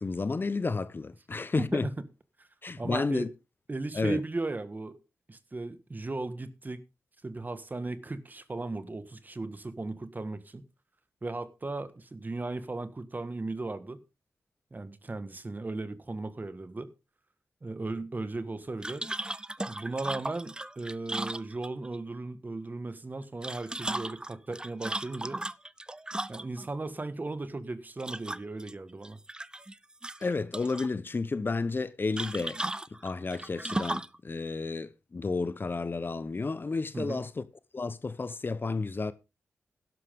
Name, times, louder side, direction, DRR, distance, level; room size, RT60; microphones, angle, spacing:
voice 1, 0.0-1.9 2.6-3.3 3.9-4.2 30.2-32.6 33.0-37.4 37.7-39.1, left 3 dB, 40° left, 0.9 m, -31 dB
voice 2, 1.6-1.9 2.4-2.5 2.8-3.3 3.7-5.0 5.3-6.8 7.2-10.6 11.2-14.0 14.7-16.9 17.6-19.1 19.7-25.4 26.3-29.2 36.9-37.2, right 2 dB, 35° right, 1.6 m, -36 dB
sound 1, 18.8-22.0 23.2-26.7 28.0-28.7 29.0-29.7 30.0-30.9 32.2-34.2, right 1 dB, 15° right, 0.5 m, -36 dB
12.0 x 11.0 x 3.7 m
cardioid pair, 50°, 5 cm